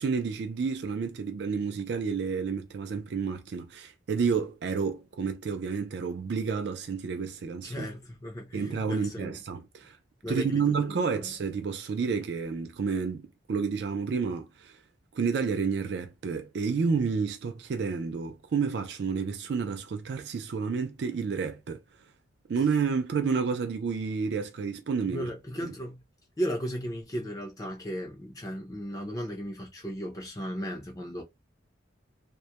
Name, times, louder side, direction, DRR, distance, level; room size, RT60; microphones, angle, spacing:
voice 1, 0.0-7.9 8.5-10.0 10.3-14.8 15.1-21.8 22.5-25.3 25.6-25.8, right 5 dB, 55° right, 0.3 m, -30 dB
voice 2, 7.6-9.4 10.2-11.3 25.1-26.0 26.4-31.2, equal, 20° left, 0.4 m, -36 dB
2.2 x 2.0 x 2.8 m
head